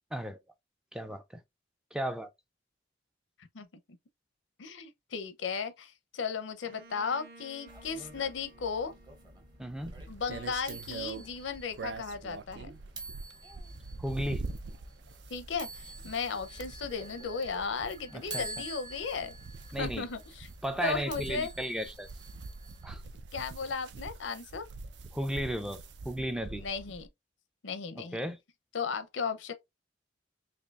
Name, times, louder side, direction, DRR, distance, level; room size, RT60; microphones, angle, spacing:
voice 1, 0.9-1.4 1.9-2.3 9.6-9.9 14.0-14.4 18.1-18.4 19.7-20.1 20.6-22.1 22.8-23.0 25.1-26.6 28.0-28.4, equal, 5° right, 0.3 m, -35 dB
voice 2, 4.6-8.9 10.1-12.7 15.3-19.3 19.8-20.5 20.8-21.5 23.3-24.6 26.5-27.1 27.6-28.2 28.7-29.5, left 5 dB, 90° left, 0.6 m, -35 dB
Bowed string instrument, 6.6-10.4, right 2 dB, 55° right, 0.9 m, -56 dB
sound 1, 7.7-23.0, right 2 dB, 20° right, 0.8 m, -48 dB
sound 2, 9.8-27.1, right 3 dB, 70° right, 0.4 m, -44 dB
4.2 x 2.9 x 2.3 m
head